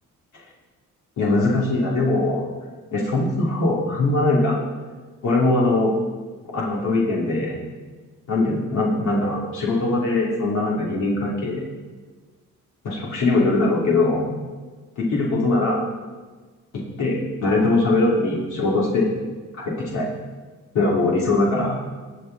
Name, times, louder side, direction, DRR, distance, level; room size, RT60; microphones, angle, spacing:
voice 1, 1.2-2.5 2.9-4.5 5.2-5.9 6.5-7.5 8.3-11.6 12.8-14.3 15.0-15.8 16.7-19.1 19.5-20.1 20.7-21.8, left 2 dB, 75° left, -4 dB, 2.8 m, -21 dB
19.5 x 6.6 x 3.9 m, 1.4 s
cardioid pair, 90°, 30 cm